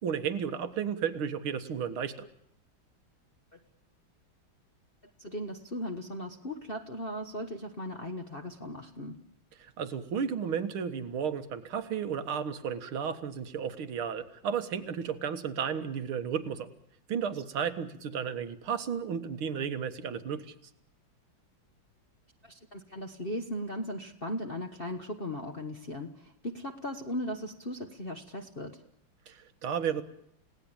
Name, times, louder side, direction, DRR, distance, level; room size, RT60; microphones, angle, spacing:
voice 1, 0.0-2.3 9.6-16.7 17.1-20.5 29.3-30.0, right 7 dB, 90° right, 9 dB, 2.4 m, -33 dB
voice 2, 5.2-9.2 22.4-28.8, equal, 30° left, 3 dB, 1.3 m, -37 dB
30.0 x 17.5 x 8.9 m, 0.76 s
omnidirectional pair, 2.2 m